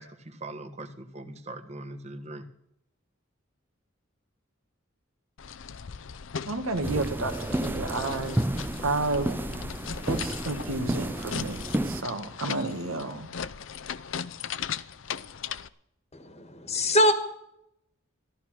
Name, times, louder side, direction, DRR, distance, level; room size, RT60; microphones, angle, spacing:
voice 1, 0.0-2.5, right 2 dB, 30° right, 1.3 m, -41 dB
sound 1, 5.4-15.7, left 7 dB, 65° left, 0.6 m, -38 dB
voice 2, 6.5-8.4 8.8-9.4 10.1-13.3, right 2 dB, 90° right, 1.7 m, -31 dB
sound 2, 6.8-12.0, right 1 dB, 10° right, 0.5 m, -31 dB
voice 3, 16.1-17.1, equal, 30° left, 1.4 m, -23 dB
14.5 x 12.5 x 6.1 m
head